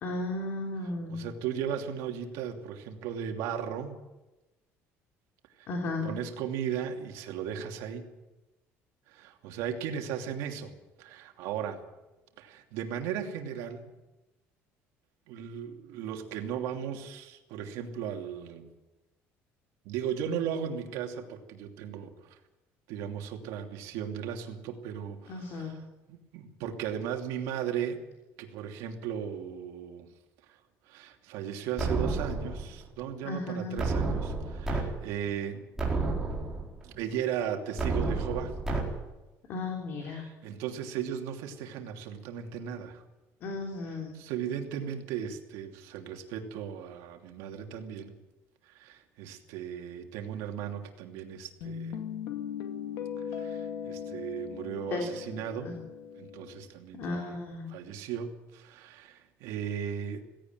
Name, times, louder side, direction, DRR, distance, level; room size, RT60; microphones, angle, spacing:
voice 1, 0.0-1.2 5.7-6.1 25.3-25.8 33.2-33.8 39.5-40.2 43.4-44.2 54.9-55.1 55.6-55.8 56.9-57.7, left 2 dB, 50° left, 2 dB, 3.3 m, -34 dB
voice 2, 0.8-4.0 5.6-8.1 9.1-10.7 11.0-11.8 12.4-13.9 15.3-18.7 19.8-22.4 22.9-28.0 28.4-30.1 30.5-30.6 30.9-35.6 36.8-38.6 40.0-43.0 43.9-48.1 48.6-52.0 53.2-55.7 56.2-57.4 57.7-60.2, right 8 dB, 85° right, 4 dB, 2.8 m, -36 dB
sound 1, 31.8-32.8 33.8-34.8 35.3-35.4 35.8-36.8 37.8-38.8, right 3 dB, 10° right, 4.3 m, -30 dB
Guitar, 51.6-56.7, left 8 dB, 85° left, 2.2 m, -39 dB
17.0 x 17.0 x 9.3 m, 1.0 s
cardioid pair, 165°, 5 cm